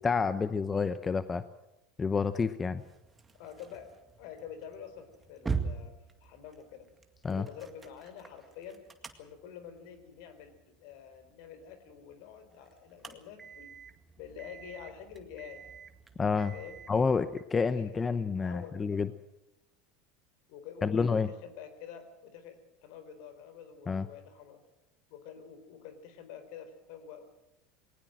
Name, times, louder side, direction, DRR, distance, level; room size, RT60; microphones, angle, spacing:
voice 1, 0.0-1.4 2.0-2.8 7.2-7.4 16.2-16.5 16.9-19.1 20.8-21.3 23.9-24.1, left 5 dB, 20° left, 13 dB, 0.9 m, -29 dB
sound 1, 2.8-17.4, right 5 dB, 15° right, 2.1 m, -44 dB
voice 2, 3.3-3.9 4.2-6.9 7.2-8.8 9.2-13.7 14.2-15.6 16.5-16.8 17.5-18.1 18.4-19.0 20.5-24.6 25.1-27.2, left 8 dB, 65° left, 10 dB, 4.0 m, -48 dB
20.5 x 18.5 x 7.7 m, 0.91 s
supercardioid pair, 105°, 0 cm